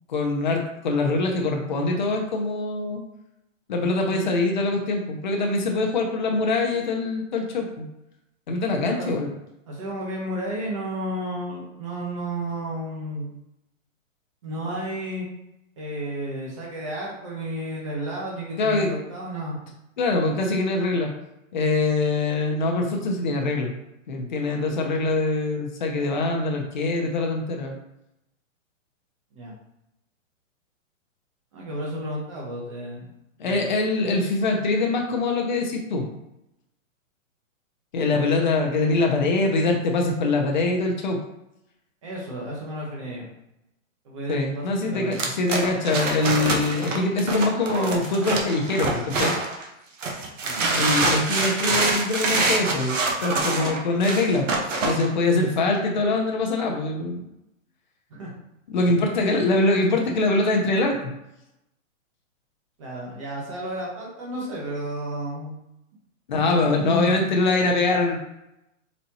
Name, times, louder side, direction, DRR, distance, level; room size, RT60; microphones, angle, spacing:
voice 1, 0.1-3.0 3.7-7.9 8.5-9.3 18.6-18.9 20.0-21.1 21.5-23.7 24.1-27.7 33.4-36.1 37.9-41.2 44.3-49.3 50.7-54.5 54.8-57.2 58.7-61.1 66.3-68.2, left 2 dB, 35° left, 2 dB, 0.7 m, -23 dB
voice 2, 8.8-9.2 9.7-13.3 14.4-15.3 15.8-19.6 29.3-29.5 31.5-33.1 33.4-33.7 42.0-43.3 44.0-45.2 50.4-50.7 58.1-58.3 62.8-65.5 66.7-67.2, right 1 dB, 25° right, -3 dB, 0.9 m, -32 dB
sound 1, 45.1-49.6 50.0-55.1, right 3 dB, 70° right, 1.1 m, -25 dB
4.2 x 4.1 x 2.8 m, 0.88 s
hypercardioid pair, 175°, 40 cm